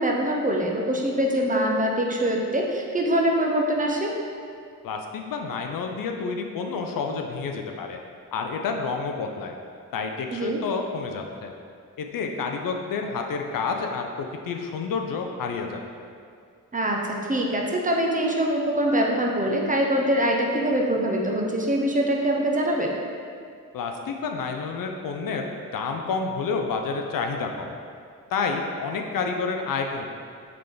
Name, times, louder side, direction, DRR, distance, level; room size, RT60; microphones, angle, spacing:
voice 1, 0.0-4.1 10.3-10.6 16.7-22.9, right 1 dB, 25° right, -1 dB, 0.6 m, -24 dB
voice 2, 4.8-8.0 8.3-9.5 9.9-11.5 12.0-16.1 23.7-27.7 28.3-30.0, left 4 dB, 75° left, 3 dB, 0.5 m, -29 dB
3.8 x 3.3 x 3.7 m, 2.2 s
cardioid pair, 60°, 34 cm